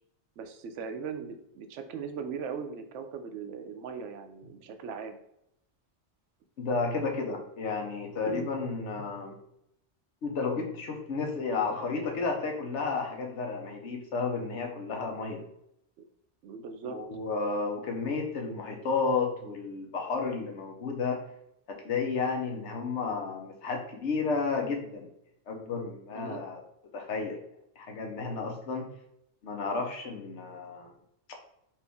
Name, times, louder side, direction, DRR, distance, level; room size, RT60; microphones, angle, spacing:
voice 1, 0.4-5.2 8.3-8.5 9.0-9.1 16.4-17.0 26.1-26.4, right 6 dB, 85° right, 7 dB, 0.9 m, -39 dB
voice 2, 6.6-9.4 10.2-15.4 16.8-21.2 21.7-25.1 25.5-26.6 26.9-27.4 27.8-28.9 29.4-30.9, left 4 dB, 80° left, 2 dB, 1.1 m, -32 dB
4.4 x 2.6 x 3.4 m, 0.77 s
omnidirectional pair, 1.2 m